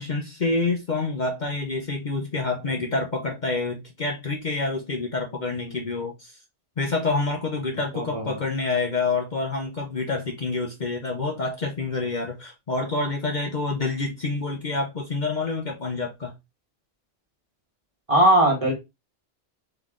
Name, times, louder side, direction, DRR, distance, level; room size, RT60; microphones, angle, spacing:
voice 1, 0.0-6.4 6.8-16.3, left 3 dB, 45° left, 0.8 m, -27 dB
voice 2, 5.4-5.8 7.9-8.3 18.1-18.7, right 1 dB, 30° right, 1.4 m, -20 dB
3.9 x 3.4 x 3.6 m
omnidirectional pair, 1.2 m